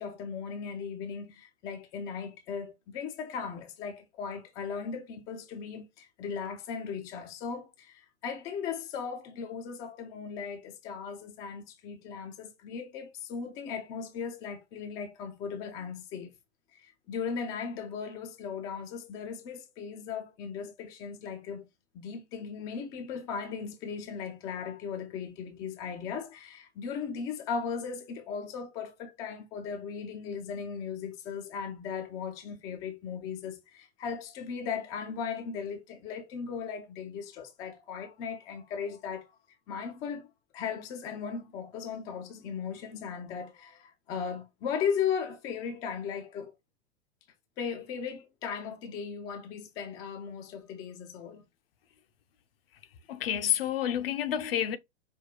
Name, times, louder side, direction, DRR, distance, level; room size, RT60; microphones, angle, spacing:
voice 1, 0.0-16.3 16.7-21.7 21.9-39.3 39.7-46.5 47.6-51.4, left 6 dB, 15° left, 0.3 m, -37 dB
voice 2, 53.1-54.8, left 10 dB, 55° left, 0.6 m, -29 dB
5.1 x 2.2 x 2.9 m
figure-of-eight pair, 105°, 35 cm